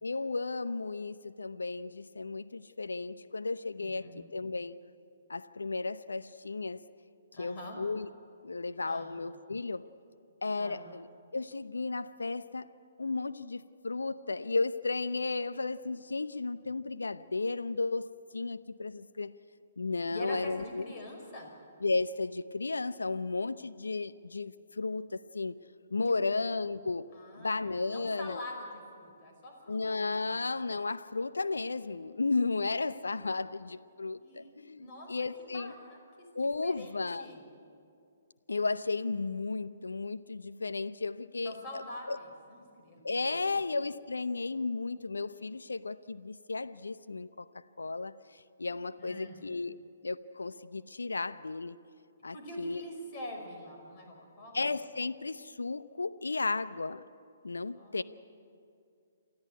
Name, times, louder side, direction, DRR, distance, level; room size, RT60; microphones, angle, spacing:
voice 1, 0.0-4.8 5.3-6.9 7.4-8.1 8.4-9.9 10.4-11.1 11.3-12.7 13.0-19.3 19.8-20.9 21.8-25.6 25.9-28.4 29.7-35.7 36.3-37.3 38.5-41.8 42.1-42.2 43.0-49.8 50.0-51.8 52.2-52.8 54.5-57.0 57.4-58.0, left 3 dB, 75° left, 14 dB, 0.7 m, -34 dB
voice 2, 3.8-4.2 7.3-7.8 8.9-9.1 10.6-10.9 20.1-21.5 26.2-26.3 27.1-27.6 27.9-30.0 34.2-34.5 34.8-35.1 35.5-36.3 36.6-37.4 41.4-43.4 49.0-49.4 52.3-54.7 57.7-58.0, left 1 dB, 35° left, 2 dB, 5.4 m, -45 dB
28.0 x 13.5 x 9.6 m, 2.4 s
figure-of-eight pair, 130°, 0 cm